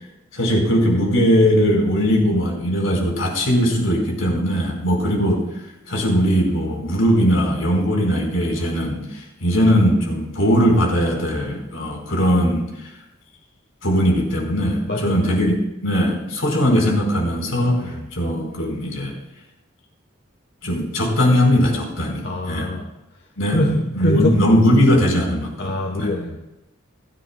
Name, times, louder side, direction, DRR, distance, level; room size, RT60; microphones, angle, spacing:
voice 1, 0.3-5.4 5.9-12.6 13.8-19.1 20.6-22.7 23.4-23.6 24.0-26.1, equal, 80° left, 0 dB, 4.6 m, -19 dB
voice 2, 14.9-15.3 17.8-18.1 22.2-22.9 23.5-24.4 25.6-26.4, left 1 dB, 55° left, 2 dB, 1.1 m, -24 dB
27.0 x 10.0 x 2.3 m, 0.97 s
head